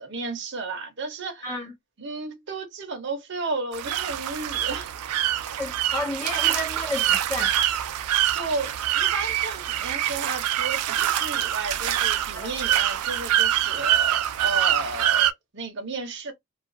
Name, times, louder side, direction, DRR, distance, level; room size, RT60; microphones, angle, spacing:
voice 1, 0.0-1.5 2.0-4.9 8.3-16.3, right 3 dB, 50° right, 0.7 m, -33 dB
voice 2, 1.4-1.7 5.6-7.5 12.3-12.5, left 1 dB, 15° left, 0.5 m, -31 dB
sound 1, 3.7-15.3, right 11 dB, 85° right, 0.3 m, -25 dB
2.3 x 2.3 x 2.5 m
head